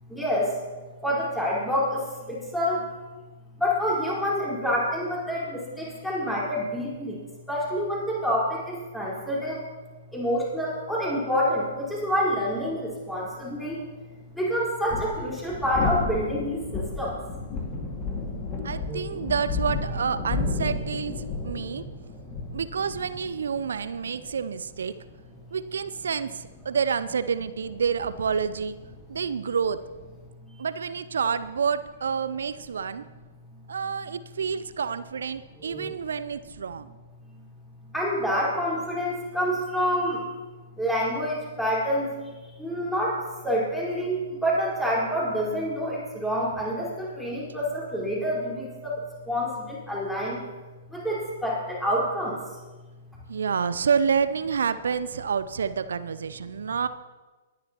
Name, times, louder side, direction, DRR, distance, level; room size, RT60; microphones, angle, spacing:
voice 1, 0.1-0.5 1.0-2.0 2.3-2.8 3.6-7.2 7.5-9.6 10.1-13.8 14.4-17.2 18.9-19.2 35.7-35.9 37.9-40.2 40.8-42.1 42.6-43.2 43.4-48.9 49.3-50.4 50.9-52.4, equal, 5° left, -6 dB, 4.3 m, -27 dB
sound 1, 14.7-30.3, left 3 dB, 30° left, 2.0 m, -33 dB
voice 2, 18.6-21.1 21.4-21.9 22.5-24.9 25.5-28.8 29.1-29.8 30.6-33.0 33.7-36.9 53.3-56.9, right 6 dB, 65° right, 13 dB, 0.5 m, -28 dB
21.5 x 10.5 x 3.0 m, 1.3 s
figure-of-eight pair, 110°, 0 cm